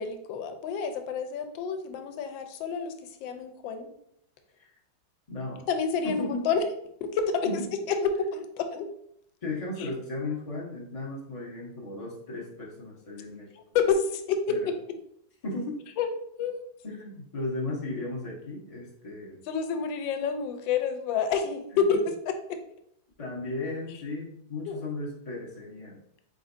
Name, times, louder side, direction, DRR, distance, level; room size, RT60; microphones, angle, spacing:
voice 1, 0.0-3.9 5.7-6.6 7.0-8.9 9.8-9.9 13.5-14.7 16.0-16.1 16.4-16.6 19.5-22.6 24.7-24.8, left 5 dB, 85° left, 7 dB, 1.3 m, -29 dB
voice 2, 5.3-5.7 6.0-6.5 7.5-7.7 9.4-13.5 14.5-14.7 15.4-15.8 16.8-19.4 23.2-26.0, left 2 dB, 55° left, -4 dB, 0.4 m, -35 dB
4.3 x 3.8 x 2.5 m, 0.71 s
omnidirectional pair, 2.0 m